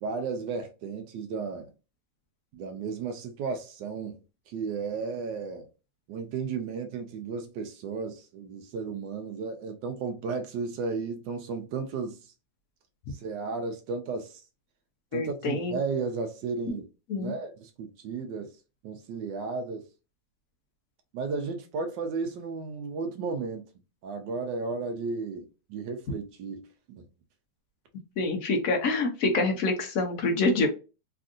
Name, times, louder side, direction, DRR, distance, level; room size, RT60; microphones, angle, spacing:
voice 1, 0.0-1.7 2.5-4.2 4.5-5.7 6.1-12.3 13.1-14.4 15.1-16.9 17.2-18.5 18.8-19.8 21.1-23.6 24.0-26.6 26.9-27.0, right 4 dB, 75° right, 1.2 m, -34 dB
voice 2, 15.1-15.8 17.1-17.3 28.2-30.7, left 3 dB, 65° left, 0.9 m, -26 dB
3.5 x 2.5 x 2.4 m
omnidirectional pair, 2.1 m